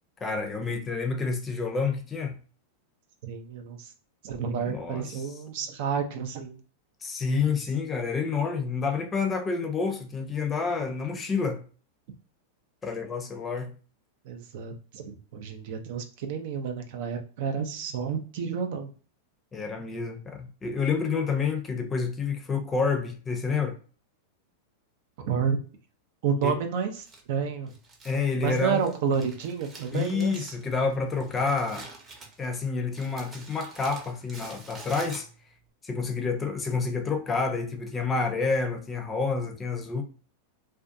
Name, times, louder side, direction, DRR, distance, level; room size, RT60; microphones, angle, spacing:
voice 1, 0.2-2.3 4.6-5.2 7.0-11.6 12.8-13.7 19.5-23.8 26.4-26.5 28.0-28.8 29.9-31.9 32.4-35.3 35.8-40.0, left 4 dB, 20° left, 0.6 m, -29 dB
voice 2, 3.2-3.9 4.2-6.6 14.2-18.9 25.2-25.6 26.2-27.7 28.4-30.6, right 6 dB, 60° right, 0.5 m, -30 dB
Crumpling crinkling, 27.0-35.6, right 3 dB, 25° right, 0.8 m, -48 dB
2.5 x 2.2 x 2.5 m
hypercardioid pair, 110°, 0 cm